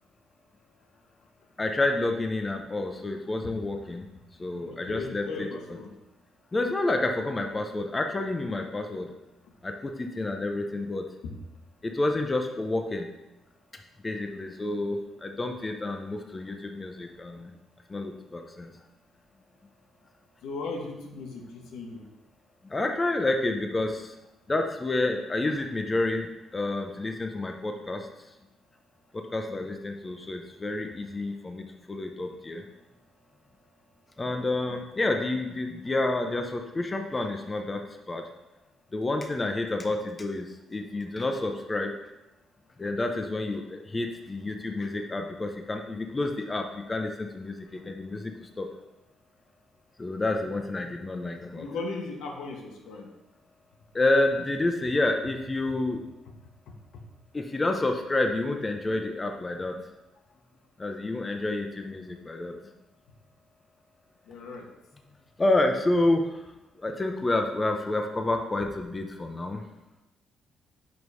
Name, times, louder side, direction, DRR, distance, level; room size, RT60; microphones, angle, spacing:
voice 1, 1.6-4.0 4.4-5.5 6.5-9.1 9.6-11.1 11.8-13.1 14.0-17.5 17.9-18.7 22.6-24.1 24.5-28.1 29.1-32.6 34.2-37.8 38.1-38.3 38.9-41.9 42.8-48.7 50.0-51.7 53.9-56.0 57.3-59.8 60.8-62.5 65.4-66.5 66.8-69.6, left 2 dB, 25° left, 4 dB, 0.6 m, -29 dB
voice 2, 4.7-5.9 20.4-22.0 51.6-53.1 64.3-64.7, left 3 dB, 85° left, 1 dB, 1.0 m, -37 dB
5.2 x 4.0 x 4.7 m, 0.97 s
cardioid pair, 90°, 0 cm